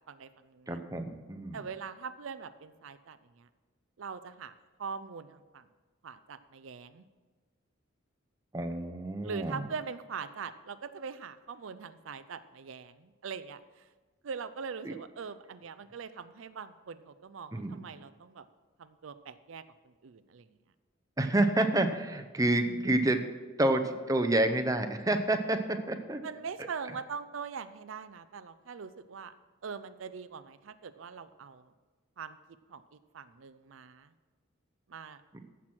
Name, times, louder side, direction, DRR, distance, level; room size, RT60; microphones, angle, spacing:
voice 1, 0.1-0.8 1.5-3.5 4.0-4.5 4.8-5.6 6.0-7.0 9.2-13.6 14.2-18.4 18.8-19.6 20.0-20.5 26.2-29.3 29.6-31.6 32.2-32.4 32.7-32.8 33.1-34.1 34.9-35.2, right 5 dB, 80° right, 12 dB, 0.5 m, -42 dB
voice 2, 0.7-1.6 8.5-9.7 14.8-14.9 17.5-17.8 21.2-23.2 23.6-26.2 26.6-26.7, right 1 dB, 15° right, 7 dB, 0.7 m, -28 dB
15.0 x 6.1 x 6.1 m, 1.3 s
head